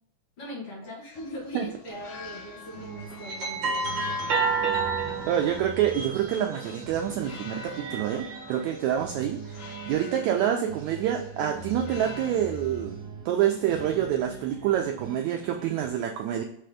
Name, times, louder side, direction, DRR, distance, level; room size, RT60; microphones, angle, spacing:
voice 1, 0.4-4.4 9.3-9.4, equal, 50° left, -5 dB, 2.3 m, -41 dB
sound 1, 1.1-12.9, left 3 dB, 70° left, 1.4 m, -46 dB
sound 2, 1.9-2.2 2.9-7.0 7.6-8.7, right 4 dB, 45° right, 1.8 m, -31 dB
sound 3, 2.7-15.9, right 3 dB, 65° right, 2.2 m, -43 dB
voice 2, 5.3-16.4, right 10 dB, 90° right, 3 dB, 1.6 m, -27 dB
5.9 x 3.3 x 4.9 m, 0.71 s
omnidirectional pair, 3.9 m